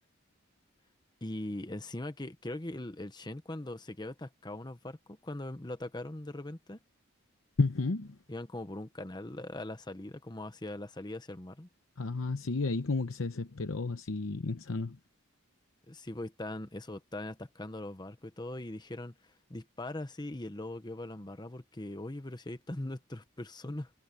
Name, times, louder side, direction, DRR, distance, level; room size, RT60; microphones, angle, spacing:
voice 1, 1.2-6.8 8.3-11.7 15.9-23.9, left 1 dB, 20° left, 1.0 m, -41 dB
voice 2, 7.6-8.2 12.0-15.0, left 3 dB, 70° left, 0.9 m, -32 dB
head